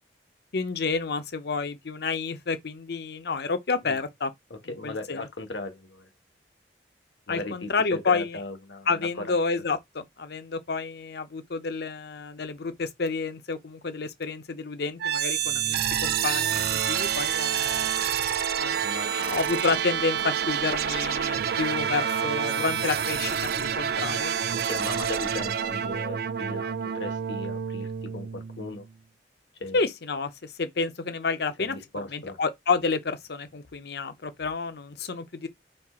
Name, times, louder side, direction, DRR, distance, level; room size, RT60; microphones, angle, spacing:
voice 1, 0.5-4.3 4.7-5.3 7.3-8.4 8.9-17.9 18.6-24.3 29.7-35.5, left 4 dB, 65° left, 0.7 m, -30 dB
voice 2, 4.5-6.1 7.3-9.4 18.8-19.4 24.5-28.9 29.6-29.8 31.6-32.4, left 2 dB, 80° left, 1.3 m, -37 dB
sound 1, 15.0-28.9, right 8 dB, 60° right, 0.4 m, -28 dB
4.3 x 2.4 x 4.2 m
head